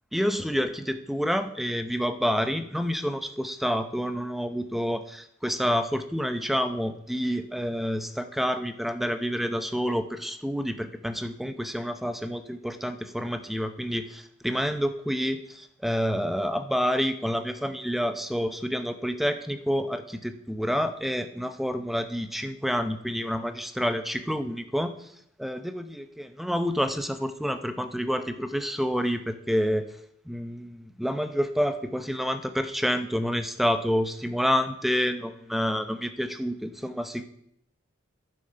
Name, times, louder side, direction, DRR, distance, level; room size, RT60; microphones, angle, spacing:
voice 1, 0.1-25.1 25.4-29.9 30.3-37.3, equal, ahead, 9 dB, 0.6 m, -28 dB
11.0 x 7.7 x 5.7 m, 0.74 s
head